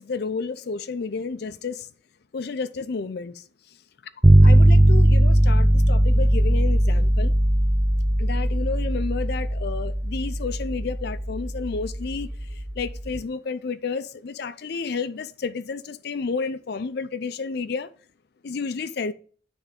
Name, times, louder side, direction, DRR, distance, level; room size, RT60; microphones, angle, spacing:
voice 1, 0.0-1.9 2.3-3.4 4.4-7.3 8.2-17.9 18.4-19.1, left 4 dB, 55° left, 0.4 m, -31 dB
sound 1, 4.2-13.2, right 1 dB, 10° right, 0.3 m, -19 dB
9.7 x 3.5 x 5.1 m
head